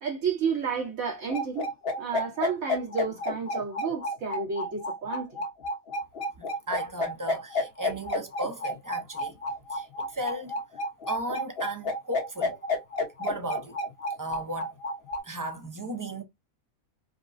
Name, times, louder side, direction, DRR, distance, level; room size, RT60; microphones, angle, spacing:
voice 1, 0.0-5.3, right 5 dB, 85° right, 2.3 m, -31 dB
sound 1, 1.3-15.2, left 2 dB, 50° left, 1.3 m, -30 dB
voice 2, 6.4-9.4 9.7-10.5 11.1-12.7 13.2-13.8 14.2-14.7 15.2-16.2, right 2 dB, 20° right, 0.6 m, -35 dB
5.1 x 2.2 x 2.5 m
omnidirectional pair, 1.4 m